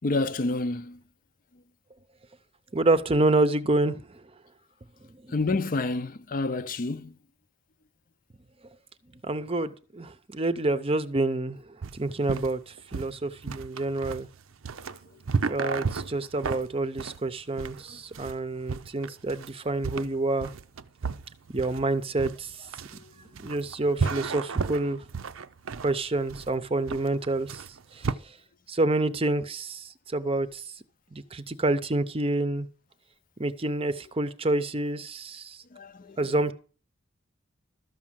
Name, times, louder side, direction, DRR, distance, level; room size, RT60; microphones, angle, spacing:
voice 1, 0.0-1.0 5.3-7.1 24.0-24.1 35.8-35.9, left 3 dB, 40° left, 0.5 m, -28 dB
voice 2, 2.7-4.0 5.3-5.4 9.2-11.6 11.9-12.6 12.9-14.3 15.5-20.5 21.5-22.5 23.4-25.0 25.8-27.6 28.7-30.6 31.1-32.7 33.4-35.6 36.2-36.5, right 2 dB, 30° right, 0.7 m, -27 dB
sound 1, 11.8-28.1, right 5 dB, 90° right, 0.6 m, -33 dB
13.0 x 6.2 x 7.4 m
head